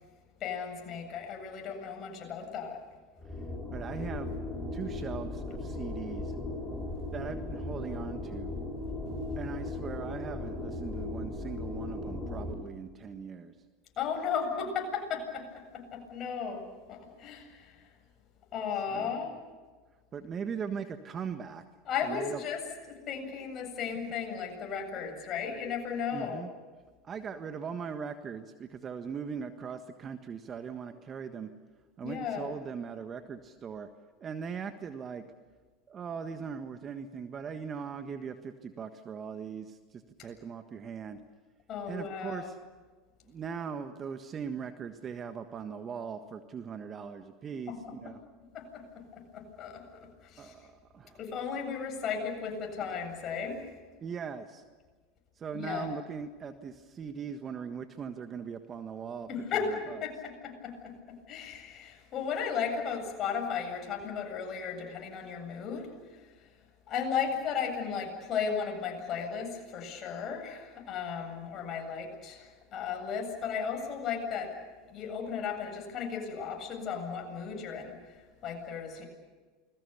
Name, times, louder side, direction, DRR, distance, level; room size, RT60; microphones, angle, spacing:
voice 1, 0.4-2.8 14.0-17.9 18.5-19.3 21.9-22.6 22.9-26.5 32.0-32.4 40.2-40.3 41.7-42.5 47.7-47.8 48.0-48.1 48.5-50.5 51.2-53.6 55.5-55.9 59.3-66.5 66.9-74.5 74.9-79.0, left 6 dB, 45° left, 3 dB, 7.8 m, -35 dB
sound 1, 3.2-12.5, left 2 dB, 5° left, 7.7 m, -37 dB
voice 2, 3.7-4.4 4.7-6.3 7.1-8.5 9.4-13.5 18.9-19.4 20.1-21.6 22.0-22.4 26.1-26.5 27.0-31.5 32.0-33.9 34.2-35.2 35.9-41.2 41.9-42.6 43.3-48.2 50.4-51.2 54.0-54.6 55.4-59.3 59.7-60.0, right 6 dB, 35° right, 8 dB, 1.5 m, -40 dB
29.0 x 21.5 x 7.0 m, 1.4 s
hypercardioid pair, 85°, 0 cm